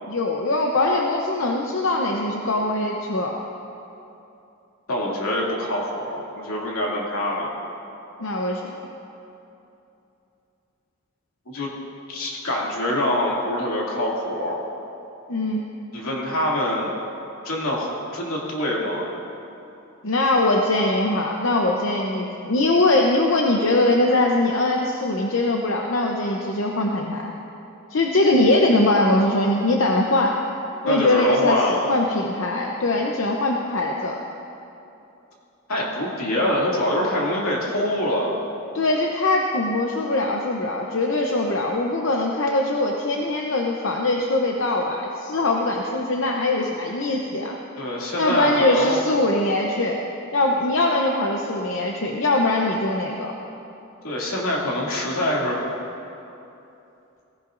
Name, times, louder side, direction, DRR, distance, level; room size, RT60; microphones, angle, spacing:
voice 1, 0.1-3.4 8.2-8.7 15.3-15.6 20.0-27.3 27.9-30.4 30.8-34.2 38.7-47.6 48.2-50.0 50.3-53.3, left 2 dB, 65° left, 0 dB, 0.8 m, -22 dB
voice 2, 4.9-7.5 11.5-11.7 12.1-14.6 15.9-17.0 17.4-19.1 30.9-31.9 35.7-38.3 47.8-49.0 54.0-55.6, left 1 dB, 85° left, -4 dB, 2.5 m, -25 dB
17.0 x 15.5 x 2.6 m, 2.8 s
head